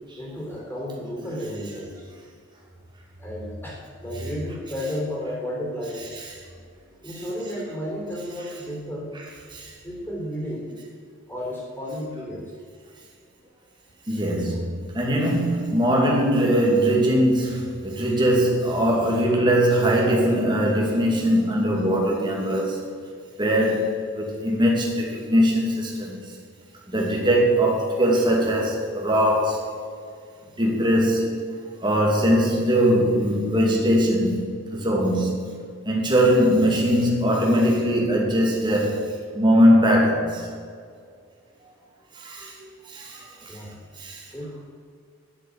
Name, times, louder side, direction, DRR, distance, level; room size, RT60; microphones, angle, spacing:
voice 1, 0.2-2.1 3.2-6.0 7.0-9.1 9.8-10.7 11.3-12.5 43.5-43.8 44.3-44.7, equal, 10° left, -3 dB, 3.6 m, -32 dB
voice 2, 14.1-22.8 23.4-23.9 24.2-26.2 26.9-29.7 30.6-31.3 31.8-34.4 34.7-35.3 35.9-38.9 39.3-40.4 42.2-42.5 42.9-43.2 44.0-44.2, equal, 20° right, -2 dB, 2.4 m, -21 dB
10.5 x 7.5 x 8.5 m, 2.2 s
head